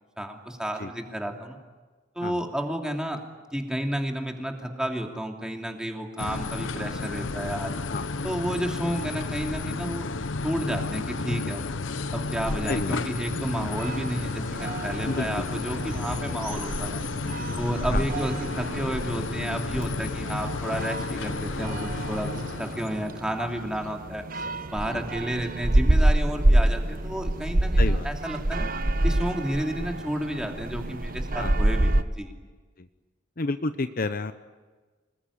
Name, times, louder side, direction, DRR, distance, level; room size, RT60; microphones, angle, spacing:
voice 1, 0.2-1.6 2.1-3.2 3.5-7.8 8.2-10.1 10.4-11.6 12.1-17.0 17.6-24.4 24.7-28.7 29.0-32.3, equal, 5° right, 2 dB, 2.8 m, -31 dB
sound 1, 6.2-23.1, left 3 dB, 90° left, 0.9 m, -32 dB
voice 2, 7.9-8.2 12.7-13.0 15.0-15.5 17.9-18.1 23.4-23.5 24.8-25.0 27.8-28.1 31.4-31.6 32.8-32.9 33.4-34.3, left 3 dB, 50° left, 10 dB, 0.9 m, -30 dB
sound 2, 12.4-32.0, right 1 dB, 50° right, 1.1 m, -27 dB
26.5 x 21.0 x 10.0 m, 1.3 s
head